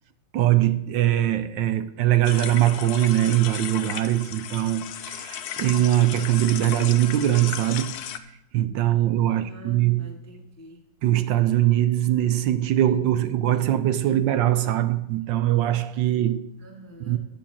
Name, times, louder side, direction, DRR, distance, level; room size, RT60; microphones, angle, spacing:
voice 1, 0.3-8.0 8.5-10.1 11.0-16.5 17.1-17.2, right 13 dB, 75° right, 1.2 m, -22 dB
sound 1, 2.2-8.2, left 10 dB, 70° left, 1.0 m, -35 dB
voice 2, 9.3-10.8 16.6-17.2, equal, 20° left, 0.4 m, -46 dB
9.7 x 7.2 x 7.1 m
omnidirectional pair, 2.2 m